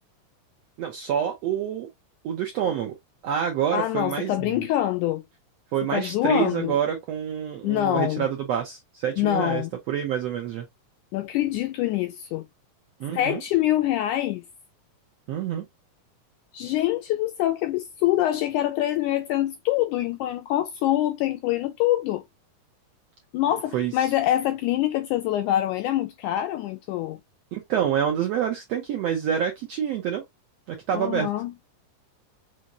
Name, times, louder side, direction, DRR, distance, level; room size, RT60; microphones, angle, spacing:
voice 1, 0.8-1.9 2.2-2.9 3.2-4.7 5.7-10.7 13.0-13.4 15.3-15.7 23.7-24.1 27.5-30.2 30.7-31.3, right 9 dB, 80° right, 1.4 m, -27 dB
voice 2, 3.7-5.2 5.9-6.8 7.6-8.3 9.2-9.7 11.1-12.5 13.1-14.4 16.5-22.2 23.3-27.2 30.9-31.5, left 13 dB, 85° left, 1.8 m, -25 dB
5.6 x 2.5 x 2.9 m
omnidirectional pair, 4.0 m